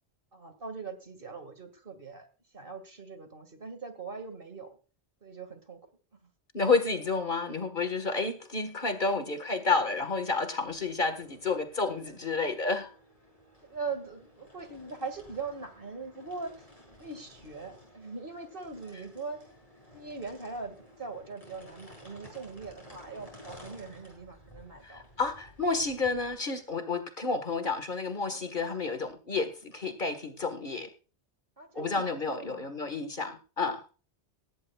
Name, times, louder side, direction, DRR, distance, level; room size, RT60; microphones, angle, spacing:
voice 1, 0.3-2.3 2.5-4.8 5.2-5.8 6.2-6.3 9.0-9.3 13.7-16.5 17.0-19.4 19.9-25.0 28.3-28.5 31.6-32.7, right 4 dB, 55° right, 8 dB, 2.3 m, -41 dB
voice 2, 6.5-12.9 24.8-30.9 31.8-33.8, left 4 dB, 50° left, 8 dB, 1.8 m, -30 dB
sound 1, 10.6-26.4, equal, 30° left, 7.9 m, -54 dB
18.0 x 16.5 x 2.4 m, 0.36 s
omnidirectional pair, 1.1 m